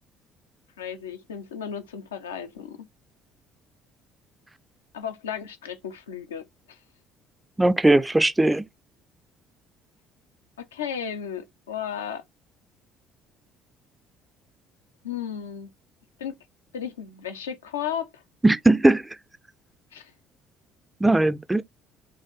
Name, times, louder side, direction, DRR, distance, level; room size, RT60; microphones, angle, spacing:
voice 1, 0.8-2.9 4.9-6.8 10.6-12.2 15.0-15.7 16.2-16.4 16.7-18.2 19.9-20.1, left 8 dB, 75° left, 0.6 m, -34 dB
voice 2, 7.6-8.6 18.4-19.1 21.0-21.6, right 2 dB, 10° right, 0.4 m, -19 dB
3.9 x 3.1 x 3.9 m
figure-of-eight pair, 50°, 0 cm